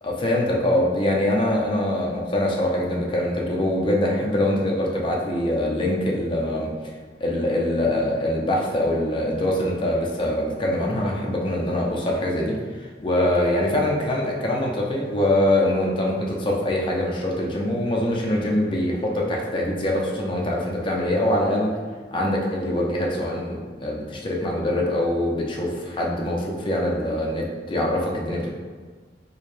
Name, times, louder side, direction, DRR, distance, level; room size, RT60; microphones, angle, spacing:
voice 1, 0.0-6.9 7.2-12.6 13.0-21.7 22.1-28.5, left 1 dB, 30° left, -2 dB, 0.6 m, -23 dB
4.5 x 2.2 x 3.2 m, 1.5 s
head